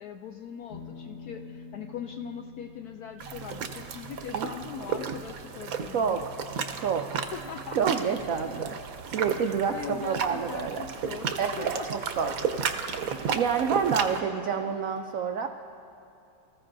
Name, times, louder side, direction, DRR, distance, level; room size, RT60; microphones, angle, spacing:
voice 1, 0.0-6.3 7.3-7.8 9.7-12.0 14.0-14.8, left 7 dB, 75° left, 5 dB, 0.8 m, -41 dB
sound 1, 0.7-9.7, left 4 dB, 50° left, 1.5 m, -50 dB
sound 2, 3.2-14.2, right 6 dB, 65° right, 0.9 m, -33 dB
voice 2, 6.8-7.1 7.8-8.8 9.1-10.8 11.4-12.3 13.3-15.5, right 6 dB, 85° right, 5 dB, 0.7 m, -28 dB
24.5 x 14.5 x 2.6 m, 2.7 s
omnidirectional pair, 2.1 m